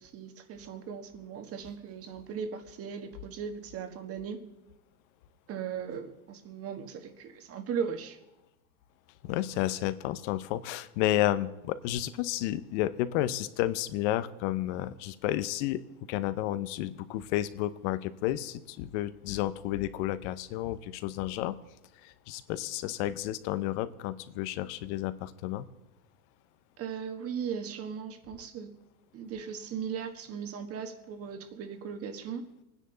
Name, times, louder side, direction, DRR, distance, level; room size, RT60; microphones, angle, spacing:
voice 1, 0.0-4.4 5.5-8.2 26.8-28.8 29.1-32.4, right 7 dB, 35° right, 7 dB, 1.6 m, -38 dB
voice 2, 9.2-15.8 16.1-21.6 22.0-25.6, left 14 dB, 55° left, 14 dB, 0.9 m, -31 dB
25.0 x 10.0 x 4.0 m, 0.95 s
supercardioid pair, 125°, 43 cm